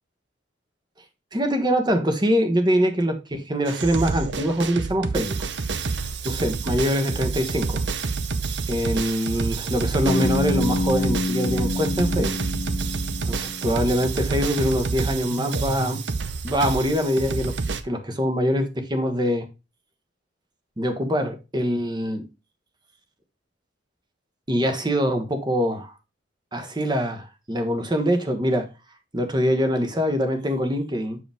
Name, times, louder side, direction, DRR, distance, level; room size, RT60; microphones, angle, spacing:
voice 1, 1.3-5.4 6.2-7.8 8.7-12.4 13.2-16.0 16.4-17.5 17.8-19.5 20.8-22.3 24.5-25.9 26.5-28.7 29.1-31.2, equal, 25° right, 1.2 m, -24 dB
sound 1, 3.7-17.8, right 4 dB, 65° right, 0.7 m, -28 dB
Bass guitar, 10.0-14.0, left 2 dB, 60° left, 1.1 m, -27 dB
7.8 x 4.9 x 3.5 m
head